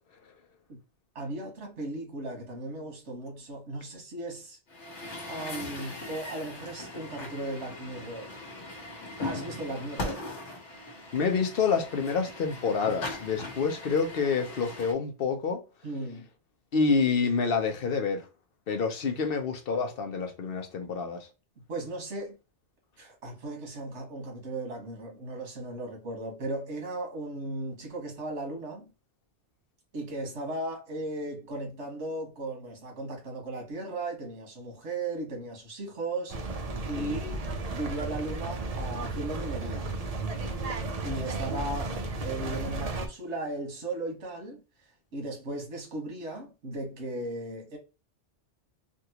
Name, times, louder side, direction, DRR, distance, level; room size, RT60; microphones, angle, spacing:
voice 1, 1.1-4.6 5.3-8.3 9.2-10.2 15.8-16.3 21.7-22.3 23.0-28.9 29.9-36.4 36.9-37.4 37.7-39.9 41.0-44.6 45.1-47.8, right 2 dB, 75° right, 1.6 m, -36 dB
Truck, 4.7-14.9, left 2 dB, 75° left, 1.3 m, -40 dB
voice 2, 11.1-15.6 16.7-18.2 18.7-21.3 37.0-37.2, left 5 dB, 60° left, 0.9 m, -28 dB
sound 1, 36.3-43.1, right 3 dB, 40° right, 0.6 m, -34 dB
3.5 x 2.5 x 2.8 m
omnidirectional pair, 1.2 m